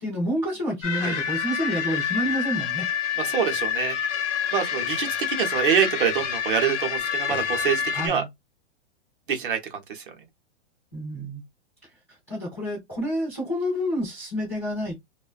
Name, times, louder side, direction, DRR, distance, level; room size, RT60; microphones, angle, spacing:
voice 1, 0.0-2.9 7.9-8.3 10.9-11.4 12.3-15.0, equal, 15° left, 0.4 m, -28 dB
sound 1, 0.8-8.1, left 8 dB, 70° left, 0.7 m, -28 dB
voice 2, 3.2-4.0 4.5-8.2 9.3-10.1, right 7 dB, 45° right, 0.7 m, -25 dB
2.5 x 2.1 x 2.3 m
hypercardioid pair, 180°, 36 cm